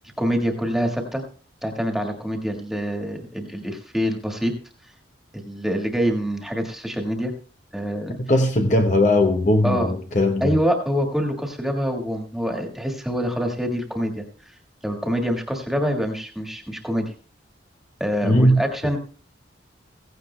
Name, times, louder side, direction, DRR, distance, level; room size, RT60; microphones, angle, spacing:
voice 1, 0.2-1.2 1.6-4.5 5.3-7.3 7.7-8.2 9.6-9.9 10.4-14.5 14.8-17.1 18.0-19.0, equal, ahead, 1.7 m, -25 dB
voice 2, 8.2-10.6 18.2-18.6, left 1 dB, 40° left, 0.8 m, -19 dB
16.5 x 15.5 x 2.2 m
head